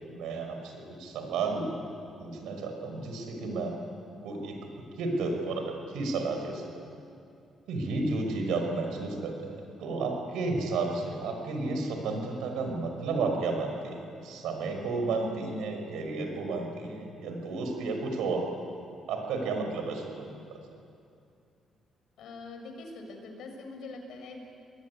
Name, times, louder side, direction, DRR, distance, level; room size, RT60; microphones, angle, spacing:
voice 1, 0.1-0.7 1.0-1.7 2.2-3.7 4.2-4.6 5.0-6.7 7.7-18.4 19.1-20.3, right 3 dB, 90° right, 3 dB, 5.9 m, -32 dB
voice 2, 22.2-24.5, left 3 dB, 80° left, 4 dB, 6.3 m, -43 dB
28.5 x 20.5 x 9.9 m, 2.6 s
cardioid pair, 75°, 0 cm